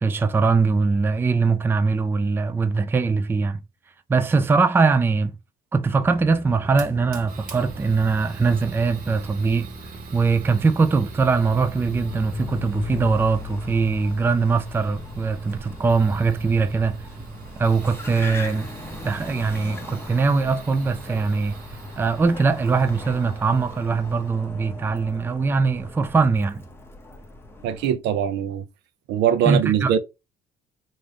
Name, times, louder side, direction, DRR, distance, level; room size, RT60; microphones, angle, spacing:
voice 1, 0.0-3.6 4.1-5.3 5.7-9.7 10.1-17.0 17.6-18.7 19.0-21.6 22.0-26.6 29.5-29.9, right 4 dB, 15° right, 0.3 m, -21 dB
sound 1, 6.0-13.0, right 2 dB, 35° right, 1.0 m, -42 dB
Fire, 6.7-24.3, right 4 dB, 60° right, 1.1 m, -42 dB
Car, 11.2-27.9, left 3 dB, 15° left, 0.7 m, -38 dB
voice 2, 27.6-28.7 29.1-30.0, right 9 dB, 85° right, 0.6 m, -22 dB
3.6 x 2.6 x 3.3 m
cardioid pair, 110°, 17 cm